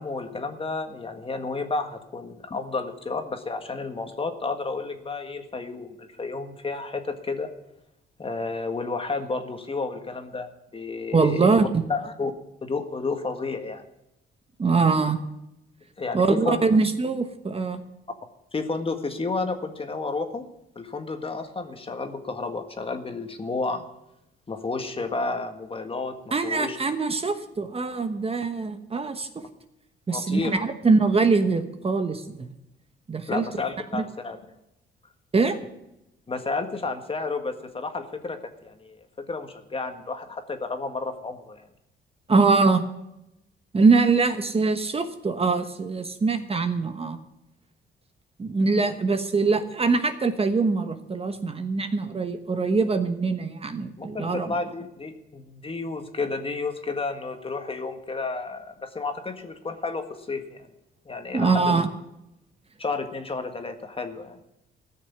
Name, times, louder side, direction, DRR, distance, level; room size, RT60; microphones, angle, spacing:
voice 1, 0.0-7.5 8.2-10.5 10.7-11.5 11.9-12.3 12.6-13.9 16.0-16.7 18.5-20.5 20.7-23.9 24.5-26.8 30.1-30.6 33.3-34.4 36.3-41.7 54.0-60.7 61.0-61.8 62.8-64.4, left 3 dB, 30° left, 6 dB, 1.7 m, -31 dB
voice 2, 11.1-11.8 14.6-15.2 16.1-17.8 26.3-29.4 30.1-32.5 33.1-33.4 33.9-34.0 35.3-35.6 42.3-42.8 43.7-47.2 48.4-54.5 61.3-61.9, right 4 dB, 30° right, 8 dB, 1.2 m, -23 dB
14.5 x 6.6 x 9.5 m, 0.88 s
cardioid pair, 90°, 20 cm